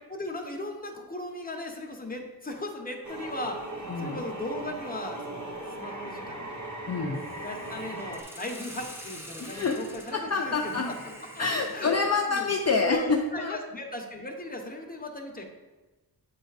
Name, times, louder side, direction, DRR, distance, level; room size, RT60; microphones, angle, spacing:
voice 1, 0.1-6.6 7.4-10.9 11.3-11.5 11.7-12.0 12.3-15.4, left 1 dB, 20° left, 2 dB, 0.9 m, -37 dB
sound 1, 3.0-8.2, right 1 dB, 45° right, 0.9 m, -38 dB
voice 2, 6.9-7.2 9.4-9.8 10.1-10.9 11.4-13.6, left 4 dB, 40° left, 1 dB, 0.5 m, -27 dB
Hiss, 7.1-12.9, equal, 5° right, 1.0 m, -46 dB
8.3 x 3.4 x 4.0 m, 1.2 s
wide cardioid pair, 70°, 40 cm